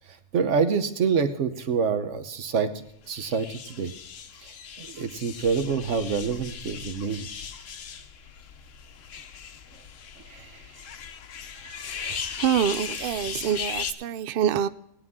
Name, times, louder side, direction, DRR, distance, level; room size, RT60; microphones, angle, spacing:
voice 1, 0.3-2.7 3.1-3.9 4.4-4.5 4.8-7.3 10.3-10.5, right 6 dB, 55° right, 9 dB, 1.2 m, -26 dB
sound 1, 3.1-13.9, left 7 dB, 60° left, 1.1 m, -38 dB
voice 2, 11.5-14.7, right 9 dB, 90° right, 12 dB, 0.4 m, -27 dB
18.0 x 9.6 x 3.7 m, 0.80 s
omnidirectional pair, 1.5 m